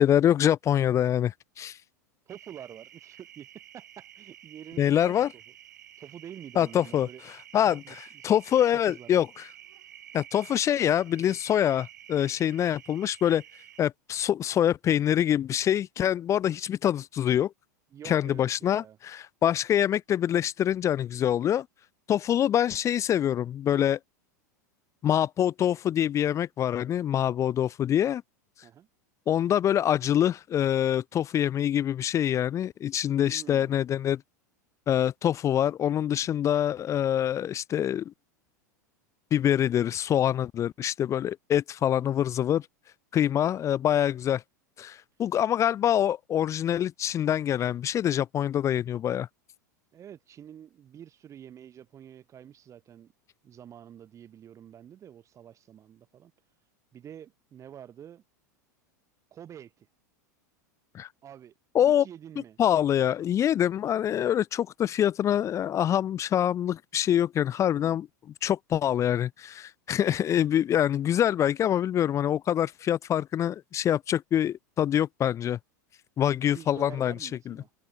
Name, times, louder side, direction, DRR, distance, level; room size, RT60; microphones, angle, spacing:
voice 1, 0.0-1.8 4.8-5.3 6.6-7.1 7.5-7.8 8.2-9.3 10.1-13.4 13.8-17.5 18.0-21.7 22.1-24.0 25.0-28.2 29.3-34.2 34.9-38.1 39.3-42.6 43.1-44.4 44.8-49.3 60.9-61.1 61.7-62.0 62.6-68.1 68.4-75.6 76.2-77.1 77.5-77.6, left 10 dB, 30° left, 0.8 m, -25 dB
voice 2, 2.3-3.5 3.7-5.4 6.0-7.2 7.7-8.3 8.6-9.1 17.9-19.0 28.6-28.9 33.3-33.8 49.9-53.1 53.4-56.3 56.9-58.2 59.3-59.9 61.2-61.5 61.9-62.6 67.7-68.0 70.7-70.8 76.2-77.7, right 9 dB, 30° right, 4.8 m, -47 dB
sound 1, 2.3-13.8, right 11 dB, 80° right, 7.2 m, -51 dB
hypercardioid pair, 100°, 10 cm